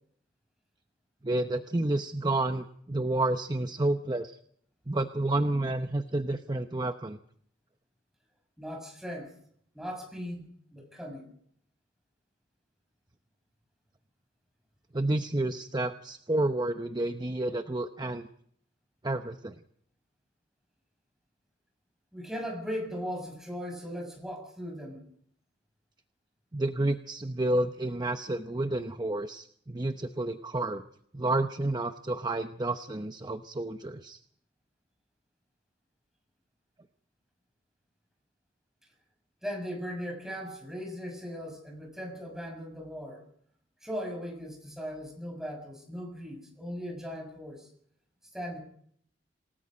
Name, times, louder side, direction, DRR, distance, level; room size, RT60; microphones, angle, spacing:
voice 1, 1.2-4.4 4.9-7.2 14.9-18.2 19.0-19.5 26.5-30.8 31.1-34.2, right 2 dB, 25° right, 8 dB, 0.8 m, -30 dB
voice 2, 8.6-9.4 9.7-11.3 22.1-25.0 39.4-43.2 43.8-47.7 48.3-48.6, equal, 5° right, 2 dB, 6.6 m, -38 dB
28.0 x 18.0 x 5.2 m, 0.65 s
head